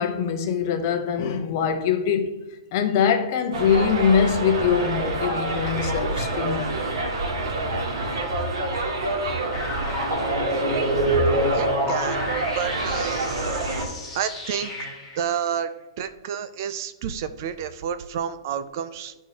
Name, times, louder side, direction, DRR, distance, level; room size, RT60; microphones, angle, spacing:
voice 1, 0.0-2.3 2.7-6.7, left 7 dB, 35° left, 0.8 m, -23 dB
Subway metro underground, 3.5-13.8, right 2 dB, 75° right, 2.1 m, -27 dB
sound 1, 9.5-15.2, equal, 5° left, 1.8 m, -28 dB
voice 2, 11.5-12.2 12.5-13.2 14.1-14.7 15.2-15.7 16.0-19.1, right 8 dB, 40° right, 0.4 m, -29 dB
12.0 x 4.6 x 2.8 m
hypercardioid pair, 170°, 3 cm